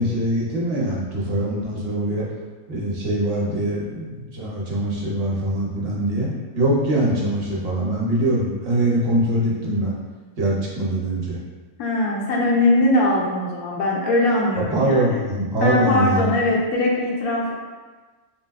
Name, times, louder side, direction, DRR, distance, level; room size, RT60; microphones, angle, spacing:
voice 1, 0.0-2.2 2.7-10.0 10.4-11.4 14.7-16.3, right 1 dB, 55° right, -5 dB, 0.8 m, -23 dB
voice 2, 11.8-15.2 15.6-17.5, left 2 dB, 90° left, -3 dB, 1.1 m, -21 dB
3.4 x 2.6 x 2.3 m, 1.3 s
omnidirectional pair, 1.5 m